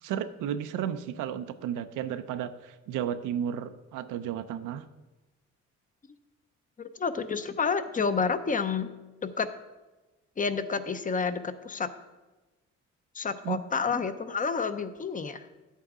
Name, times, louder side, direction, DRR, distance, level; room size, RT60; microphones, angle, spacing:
voice 1, 0.0-4.8 13.4-13.6, right 9 dB, 85° right, 10 dB, 0.6 m, -33 dB
voice 2, 6.8-8.9 9.2-9.5 10.4-11.9 13.1-15.5, left 5 dB, 25° left, 11 dB, 0.6 m, -29 dB
10.5 x 8.4 x 3.6 m, 1.1 s
cardioid pair, 90°, 30 cm